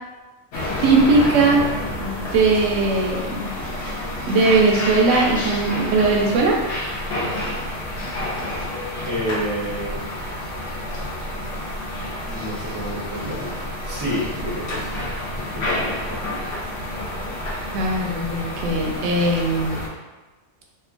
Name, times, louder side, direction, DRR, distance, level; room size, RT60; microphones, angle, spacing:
sound 1, 0.5-19.9, left 1 dB, 65° left, 0.8 m, -29 dB
voice 1, 0.8-1.7 2.0-3.5 4.3-6.6 17.7-19.8, right 3 dB, 75° right, -1 dB, 0.9 m, -19 dB
voice 2, 9.1-10.0 12.2-13.6 13.8-16.2, equal, 30° right, -7 dB, 0.4 m, -29 dB
2.9 x 2.2 x 2.5 m, 1.2 s
omnidirectional pair, 1.3 m